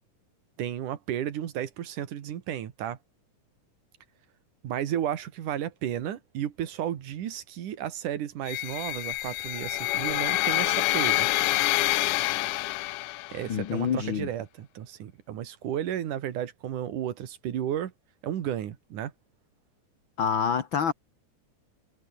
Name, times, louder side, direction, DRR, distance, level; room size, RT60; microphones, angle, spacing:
voice 1, 0.6-3.0 4.6-11.3 13.3-17.9 18.2-19.1, right 10 dB, 85° right, 3.2 m, -33 dB
sound 1, 8.5-13.5, left 17 dB, 80° left, 2.2 m, -27 dB
voice 2, 13.5-14.3 20.2-20.9, left 7 dB, 45° left, 1.9 m, -27 dB
omnidirectional pair, 3.6 m